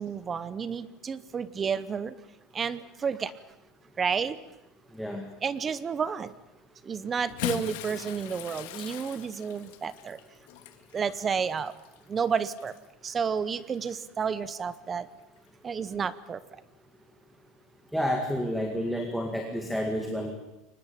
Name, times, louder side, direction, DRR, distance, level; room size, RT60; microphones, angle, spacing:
voice 1, 0.0-2.1 2.5-3.3 4.0-4.3 5.4-6.3 6.9-10.2 10.9-11.7 12.1-12.7 13.0-15.1 15.6-16.4, right 6 dB, 20° right, 16 dB, 0.8 m, -31 dB
voice 2, 4.9-5.2 17.9-20.3, equal, ahead, 3 dB, 2.0 m, -30 dB
Bathtub (filling or washing) / Splash splatter, 7.2-12.9 13.8-13.9 15.4-15.5, left 13 dB, 75° left, 1.9 m, -40 dB
23.0 x 20.0 x 8.8 m, 0.93 s
cardioid pair, 175°, 0 cm